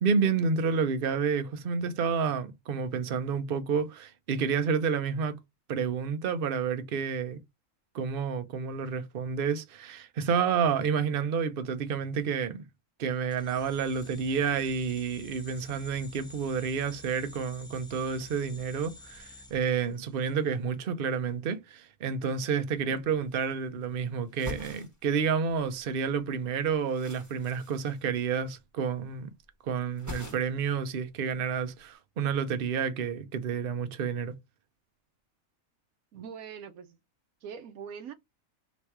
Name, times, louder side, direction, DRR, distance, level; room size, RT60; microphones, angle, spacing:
voice 1, 0.0-5.4 5.7-7.4 7.9-12.6 13.0-29.3 29.6-34.4, right 6 dB, 50° right, 0.7 m, -30 dB
sound 1, 13.3-20.4, left 1 dB, 5° left, 0.6 m, -50 dB
sound 2, 22.7-22.8 23.0-23.9 24.2-25.9 26.2-28.7 28.9-29.5 29.7-30.7 31.0-31.8, left 2 dB, 15° right, 1.1 m, -45 dB
voice 2, 36.1-37.0 37.4-38.1, right 7 dB, 75° right, 1.2 m, -42 dB
3.3 x 3.1 x 4.5 m
omnidirectional pair, 1.5 m